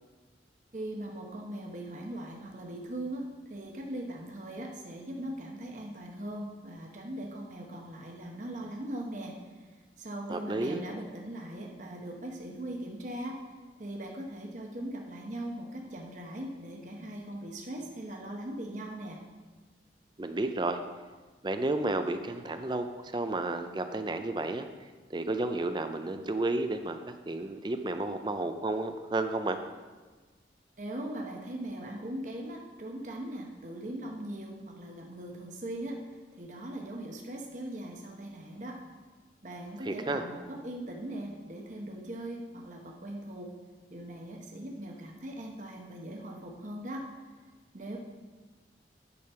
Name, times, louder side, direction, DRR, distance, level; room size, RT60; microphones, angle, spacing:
voice 1, 0.7-9.7 10.0-13.4 13.8-19.2 30.8-38.8 39.4-43.5 43.9-47.1 47.7-48.0, right 1 dB, 45° right, 0 dB, 1.1 m, -40 dB
voice 2, 10.3-10.8 20.2-20.8 21.4-24.7 25.1-29.6 39.8-40.2, right 2 dB, 25° right, 8 dB, 0.5 m, -32 dB
9.5 x 5.2 x 5.7 m, 1.3 s
head